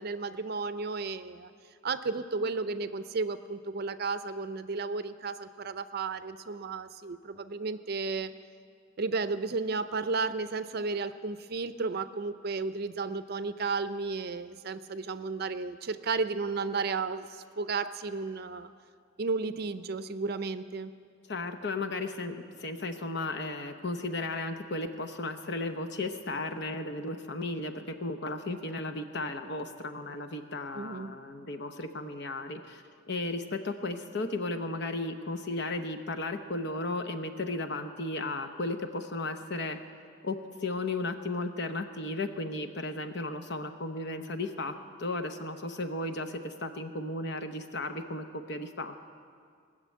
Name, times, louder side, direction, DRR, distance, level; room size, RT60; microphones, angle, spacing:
voice 1, 0.0-1.5 1.8-8.3 9.0-18.7 19.2-20.9 30.7-31.2, right 4 dB, 50° right, 12 dB, 0.5 m, -33 dB
voice 2, 21.3-39.8 40.2-40.4 40.6-49.0, left 2 dB, 60° left, 7 dB, 0.9 m, -35 dB
19.5 x 6.7 x 8.5 m, 2.2 s
head